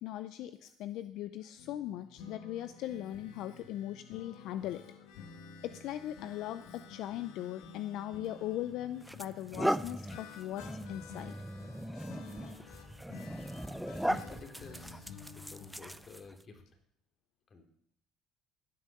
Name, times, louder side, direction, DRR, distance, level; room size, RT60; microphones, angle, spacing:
voice 1, 0.0-4.8 5.6-11.3, left 13 dB, 70° left, 12 dB, 0.5 m, -39 dB
sound 1, 1.6-16.0, left 5 dB, 90° left, 1.6 m, -52 dB
sound 2, 8.3-8.4 9.0-16.4, equal, ahead, 0.5 m, -38 dB
voice 2, 13.7-16.8 17.5-17.6, left 4 dB, 40° left, 4 dB, 3.0 m, -53 dB
15.5 x 8.4 x 6.7 m, 0.73 s
cardioid pair, 100°, 0 cm